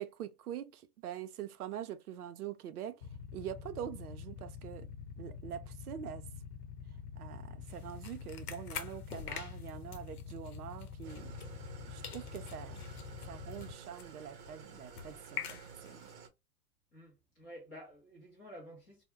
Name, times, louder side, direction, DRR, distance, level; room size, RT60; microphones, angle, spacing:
voice 1, 0.0-4.9 5.2-6.3 7.2-11.6 11.8-12.8 13.3-16.1, right 10 dB, 70° right, 0.6 m, -44 dB
Motorcycle / Idling, 3.0-13.7, left 7 dB, 35° left, 0.9 m, -47 dB
sound 1, 7.6-11.8 12.0-16.1, left 8 dB, 65° left, 0.8 m, -47 dB
Engine starting / Idling, 11.0-16.3, right 6 dB, 45° right, 0.9 m, -52 dB
voice 2, 16.9-19.0, equal, 15° left, 0.4 m, -51 dB
2.2 x 2.1 x 3.0 m
hypercardioid pair, 120°, 47 cm